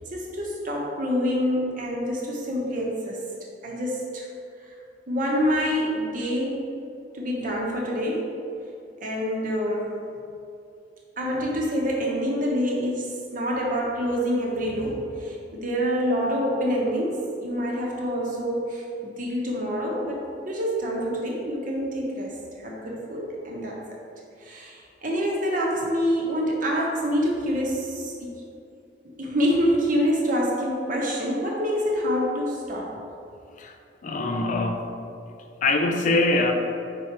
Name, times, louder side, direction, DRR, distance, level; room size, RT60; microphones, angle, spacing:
voice 1, 0.1-3.2 3.6-4.2 4.7-4.8 5.1-6.7 7.1-8.3 9.0-9.9 11.2-22.4 22.6-23.8 24.4-28.3 29.0-32.9, equal, 45° right, -3 dB, 1.1 m, -26 dB
voice 2, 34.0-34.9 35.6-36.5, left 2 dB, 45° left, 4 dB, 0.4 m, -23 dB
4.7 x 4.6 x 4.3 m, 2.6 s
head